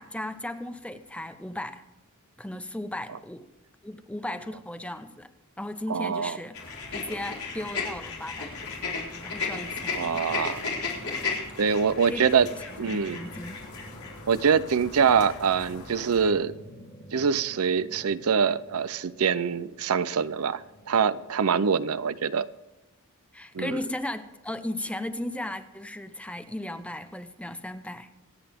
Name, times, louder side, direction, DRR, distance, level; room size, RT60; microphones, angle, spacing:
voice 1, 0.0-1.8 2.4-3.5 3.8-5.3 5.6-6.6 6.9-8.5 9.2-10.2 12.1-12.3 12.9-13.6 23.3-28.1, left 1 dB, 5° left, 10 dB, 0.7 m, -36 dB
voice 2, 5.9-6.4 9.9-10.7 11.6-12.5 12.8-13.2 14.3-16.5 17.1-22.5 23.5-23.8, right 6 dB, 85° right, 15 dB, 0.6 m, -24 dB
sound 1, 6.5-16.3, left 4 dB, 90° left, 4.2 m, -35 dB
sound 2, 6.8-22.2, equal, 40° left, 3.5 m, -50 dB
26.5 x 8.9 x 3.6 m, 1.0 s
head